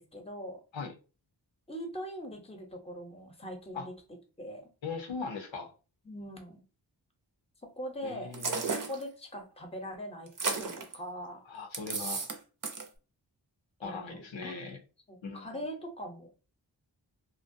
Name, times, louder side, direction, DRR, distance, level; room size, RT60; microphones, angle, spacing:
voice 1, 0.1-0.6 1.7-3.9 4.4-4.7 6.0-6.6 7.8-8.3 8.8-11.5 13.8-14.5 15.1-16.3, equal, 15° left, 4 dB, 0.7 m, -41 dB
voice 2, 4.8-5.7 8.0-8.5 11.5-12.3 13.8-14.8 15.2-15.6, left 4 dB, 85° left, 2 dB, 0.7 m, -39 dB
sound 1, 8.3-9.0 10.3-10.9 11.7-12.4 12.6-12.9, right 4 dB, 45° right, 0.6 m, -33 dB
2.5 x 2.1 x 2.6 m, 0.34 s
cardioid pair, 40°, 45 cm